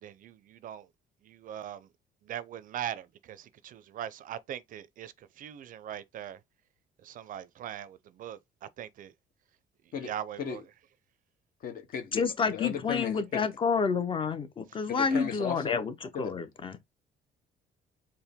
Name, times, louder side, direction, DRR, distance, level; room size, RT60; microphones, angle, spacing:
voice 1, 0.0-0.9 1.2-1.9 2.2-6.4 7.0-9.1 10.0-10.6 15.1-15.3, right 10 dB, 55° right, 0.5 m, -41 dB
voice 2, 11.6-13.5 14.9-15.8 16.1-16.4, left 7 dB, 55° left, 1.0 m, -36 dB
voice 3, 12.1-15.9 16.2-16.8, left 5 dB, 30° left, 0.7 m, -29 dB
4.5 x 2.1 x 3.5 m
cardioid pair, 110°, 17 cm